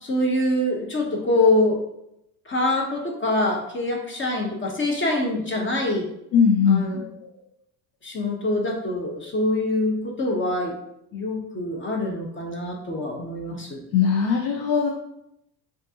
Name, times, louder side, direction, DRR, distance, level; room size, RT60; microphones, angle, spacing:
voice 1, 0.0-1.8 2.5-6.1 6.7-7.3 8.0-10.7 11.1-13.8, left 2 dB, 25° left, 1 dB, 0.8 m, -25 dB
voice 2, 6.3-6.9 13.9-14.9, left 6 dB, 70° left, 1 dB, 0.6 m, -19 dB
5.0 x 2.5 x 2.8 m, 0.80 s
supercardioid pair, 80°, 44 cm